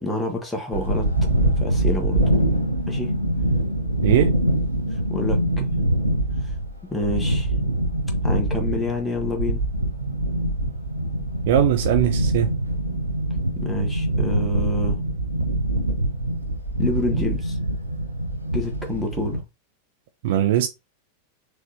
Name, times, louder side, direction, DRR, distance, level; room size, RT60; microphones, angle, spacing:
voice 1, 0.0-1.1 1.6-2.2 2.9-3.1 4.9-5.7 6.8-7.5 8.2-9.6 13.5-15.0 16.8-17.6 18.5-19.4, left 2 dB, 5° left, 1.2 m, -28 dB
sound 1, 0.7-19.4, right 1 dB, 85° right, 0.8 m, -24 dB
voice 2, 4.0-4.3 11.5-12.5 20.2-20.7, right 11 dB, 55° right, 0.4 m, -20 dB
4.0 x 3.2 x 2.7 m
figure-of-eight pair, 90°, 0 cm